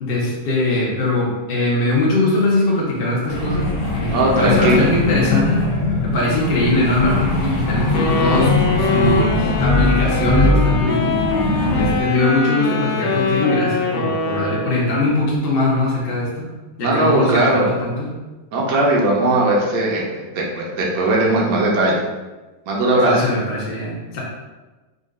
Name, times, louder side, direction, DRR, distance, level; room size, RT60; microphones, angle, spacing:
voice 1, 0.0-5.6 6.0-11.2 11.7-16.5 16.8-18.1 23.0-24.2, left 2 dB, 40° left, -5 dB, 0.9 m, -21 dB
sound 1, 3.3-11.9, left 2 dB, 65° left, 1.6 m, -20 dB
voice 2, 4.1-4.9 16.8-17.7 18.5-22.0 22.7-23.2, right 1 dB, 60° right, -2 dB, 1.3 m, -18 dB
Wind instrument woodwind instrument, 7.9-14.9, left 3 dB, 90° left, 1.4 m, -23 dB
5.3 x 2.4 x 3.7 m, 1.2 s
omnidirectional pair, 1.9 m